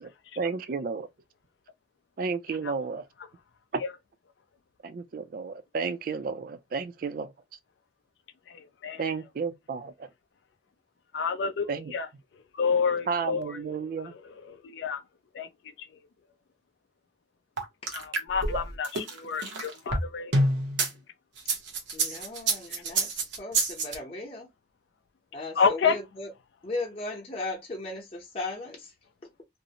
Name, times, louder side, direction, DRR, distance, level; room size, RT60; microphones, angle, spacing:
voice 1, 0.0-1.1 2.2-3.0 3.7-3.8 4.8-7.3 9.0-10.1 11.7-11.9 13.1-14.1, right 5 dB, 50° right, 0.3 m, -32 dB
voice 2, 11.1-12.1 12.5-13.4 14.6-15.0 15.3-15.5 17.9-20.3 25.6-25.9, left 5 dB, 75° left, 0.4 m, -28 dB
sound 1, 17.6-20.9 21.4-23.9, right 2 dB, 90° right, 0.7 m, -27 dB
voice 3, 21.9-24.5 25.3-26.3 26.6-28.9, left 2 dB, 35° left, 0.7 m, -37 dB
2.6 x 2.0 x 2.7 m
head